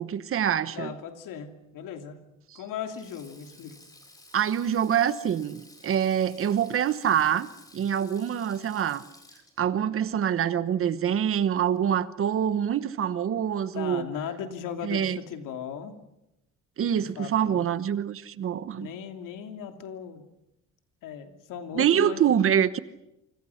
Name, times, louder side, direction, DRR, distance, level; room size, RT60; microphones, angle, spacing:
voice 1, 0.0-0.9 4.3-7.5 7.7-9.0 9.6-14.0 14.8-15.2 16.8-18.9 21.7-22.8, right 9 dB, 45° right, 1.1 m, -25 dB
voice 2, 0.7-3.8 13.7-16.0 17.0-17.7 18.8-20.2 21.0-22.2, left 8 dB, 85° left, 2.9 m, -38 dB
Sink (filling or washing), 2.8-11.3 11.5-11.8 12.9-13.2, left 1 dB, 10° left, 4.8 m, -54 dB
28.5 x 25.5 x 5.9 m
cardioid pair, 150°, 31 cm